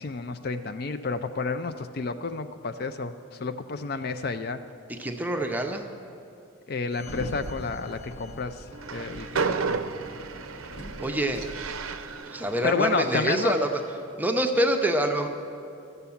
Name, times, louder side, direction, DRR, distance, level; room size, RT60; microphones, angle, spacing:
voice 1, 0.0-4.6 6.7-8.6 8.9-9.8 12.6-13.5, left 4 dB, 45° left, 9 dB, 0.4 m, -30 dB
voice 2, 4.9-5.8 11.0-11.4 12.3-13.7 14.2-15.3, right 1 dB, 10° right, 4 dB, 0.6 m, -25 dB
Sliding door, 6.9-12.2, equal, 75° left, 1.0 m, -42 dB
Train, 8.7-14.0, right 5 dB, 80° right, 0.5 m, -33 dB
14.0 x 6.8 x 7.1 m, 2.7 s
head